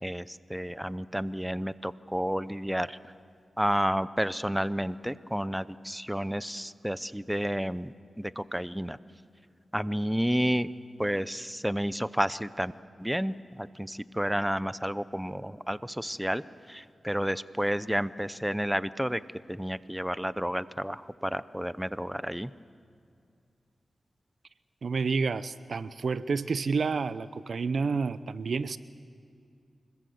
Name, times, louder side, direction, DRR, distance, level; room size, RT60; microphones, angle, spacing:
voice 1, 0.0-3.0 3.6-9.0 9.7-10.7 11.0-12.7 13.0-16.4 16.7-19.2 19.5-22.5, equal, 5° right, 16 dB, 0.6 m, -31 dB
voice 2, 24.8-28.8, right 4 dB, 70° right, 15 dB, 0.7 m, -29 dB
25.0 x 21.0 x 7.8 m, 2.3 s
wide cardioid pair, 80°, 0 cm